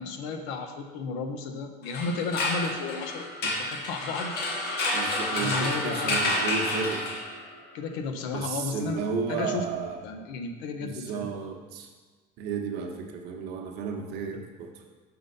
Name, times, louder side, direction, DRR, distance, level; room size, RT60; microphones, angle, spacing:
voice 1, 0.0-4.3 5.3-6.4 7.7-9.0 9.3-9.7 10.0-11.3, left 4 dB, 80° left, 6 dB, 0.8 m, -33 dB
sound 1, 1.8-7.5, left 1 dB, 60° left, 1.5 m, -29 dB
voice 2, 4.9-7.0 8.3-10.0 10.8-11.9 12.4-14.7, right 5 dB, 60° right, 2 dB, 1.0 m, -33 dB
6.9 x 4.0 x 5.3 m, 1.3 s
cardioid pair, 145°, 19 cm